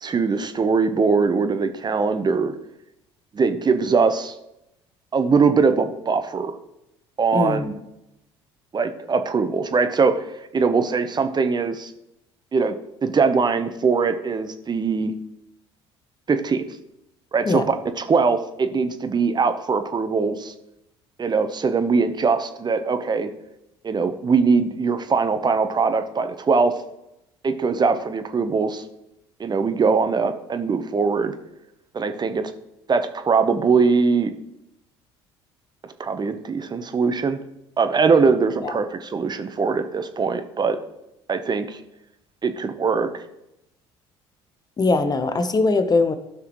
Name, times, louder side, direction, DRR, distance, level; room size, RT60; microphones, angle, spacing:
voice 1, 0.0-2.5 3.3-4.3 5.1-6.6 7.2-7.8 8.7-10.2 10.5-11.9 12.5-12.7 13.0-15.1 16.3-16.7 17.3-17.6 18.0-20.5 21.2-23.3 23.8-26.7 27.4-28.8 29.4-31.3 31.9-32.5 32.9-34.3 36.0-37.4 37.8-40.8 41.3-41.8 42.4-43.2, right 5 dB, 30° right, 8 dB, 1.0 m, -21 dB
voice 2, 7.3-7.7 17.5-17.6 38.6-38.8 44.8-46.1, left 3 dB, 30° left, 10 dB, 1.0 m, -21 dB
14.5 x 6.0 x 3.1 m, 0.87 s
hypercardioid pair, 60°, 14 cm